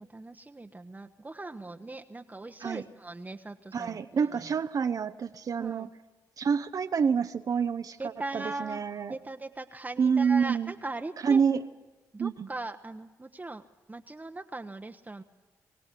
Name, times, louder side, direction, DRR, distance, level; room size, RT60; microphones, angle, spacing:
voice 1, 0.0-4.5 5.6-5.9 8.0-8.8 9.1-11.4 12.1-13.6 13.9-15.2, right 2 dB, 20° right, 5 dB, 0.9 m, -40 dB
voice 2, 3.7-5.9 6.4-9.1 10.0-10.7 11.2-11.7 12.2-12.5, right 6 dB, 55° right, 8 dB, 0.7 m, -27 dB
23.0 x 16.5 x 8.3 m, 1.2 s
supercardioid pair, 55°, 7 cm